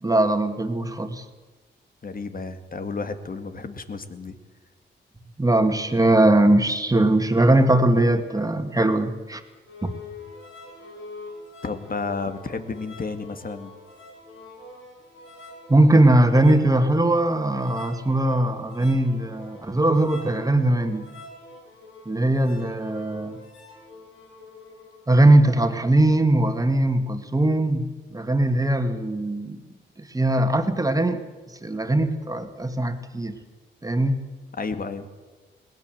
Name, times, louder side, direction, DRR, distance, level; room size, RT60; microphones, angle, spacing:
voice 1, 0.0-1.2 5.4-9.4 15.7-21.0 22.1-23.4 25.1-29.6 30.0-31.2 31.6-33.4 33.8-34.3, right 1 dB, 20° right, 7 dB, 2.4 m, -20 dB
voice 2, 2.0-4.4 11.6-13.7 34.6-35.1, left 4 dB, 45° left, 9 dB, 2.1 m, -32 dB
sound 1, 9.7-25.0, left 2 dB, 85° left, 6.8 m, -45 dB
21.0 x 18.5 x 7.9 m, 1.3 s
cardioid pair, 70°, 20 cm